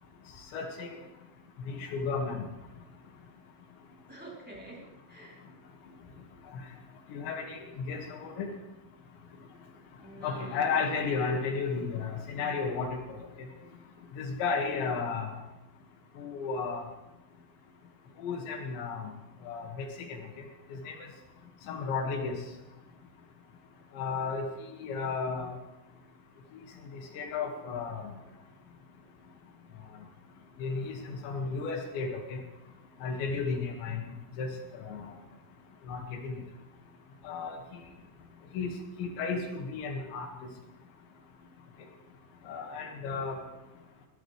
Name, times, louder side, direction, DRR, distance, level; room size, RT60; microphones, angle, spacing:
voice 1, 0.5-1.0 1.6-2.4 7.1-8.5 10.2-13.5 14.2-15.4 16.2-16.8 18.2-19.1 19.5-20.2 20.7-21.0 21.7-22.3 23.9-24.5 24.8-25.6 26.9-28.1 30.6-32.4 33.0-34.0 34.4-35.1 35.9-36.4 37.2-37.8 38.5-38.7 39.0-40.3 42.5-43.4, left 5 dB, 80° left, 3 dB, 4.3 m, -33 dB
voice 2, 4.1-5.4 10.0-10.9, right 1 dB, ahead, -5 dB, 3.7 m, -47 dB
21.5 x 17.0 x 3.3 m, 1.0 s
omnidirectional pair, 5.1 m